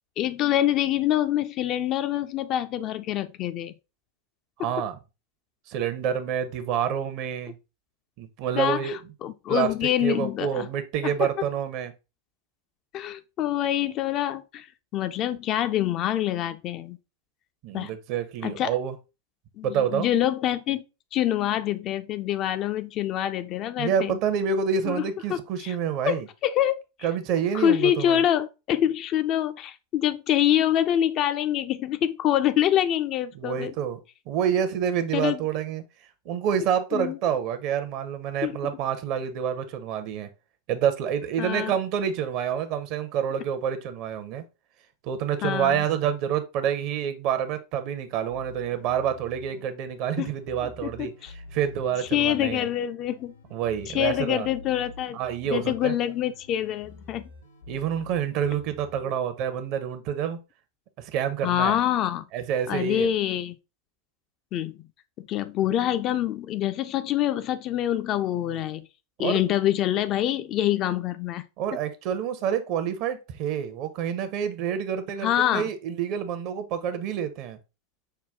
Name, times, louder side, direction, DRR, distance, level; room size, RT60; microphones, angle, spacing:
voice 1, 0.2-3.7 4.6-4.7 8.6-10.7 11.0-11.3 12.9-14.7 14.9-17.0 17.7-17.9 18.4-18.7 19.6-20.8 21.1-24.2 24.9-25.8 26.1-26.8 27.5-33.7 35.1-35.4 36.9-37.2 38.4-38.7 41.4-41.7 45.4-45.8 50.2-50.3 50.8-51.3 52.1-53.3 53.9-55.2 55.5-57.3 61.4-62.3 62.7-63.6 64.5-64.8 65.2-68.9 69.2-71.5 75.2-75.7, left 11 dB, 35° left, 0.3 m, -26 dB
voice 2, 4.6-5.0 5.7-7.6 8.2-9.0 9.5-9.7 10.0-11.9 17.6-19.0 19.6-20.1 23.8-26.3 27.0-28.2 33.3-34.0 34.3-35.8 36.3-40.3 40.7-44.4 45.0-51.1 51.5-52.7 53.5-54.5 55.1-55.9 57.7-60.4 61.0-61.8 62.3-63.1 68.4-68.5 69.2-69.4 71.6-77.6, right 8 dB, 40° right, 0.6 m, -28 dB
sound 1, 48.3-59.1, left 2 dB, 75° left, 1.1 m, -48 dB
5.5 x 2.2 x 3.4 m
figure-of-eight pair, 90°, 0 cm